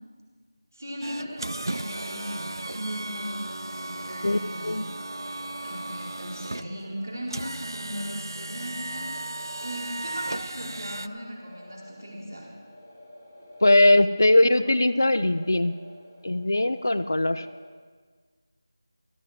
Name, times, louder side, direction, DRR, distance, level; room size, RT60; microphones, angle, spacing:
voice 1, 0.7-4.7 5.6-9.1 9.6-12.5, equal, 50° right, -4 dB, 4.7 m, -37 dB
sound 1, 1.0-11.1, right 2 dB, 85° right, 0.4 m, -36 dB
sound 2, 1.1-17.6, left 1 dB, ahead, 1.4 m, -50 dB
voice 2, 4.2-4.8 13.6-15.8 16.2-17.5, left 1 dB, 50° left, 12 dB, 0.7 m, -20 dB
16.5 x 14.0 x 4.7 m, 1.5 s
figure-of-eight pair, 180°, 2 cm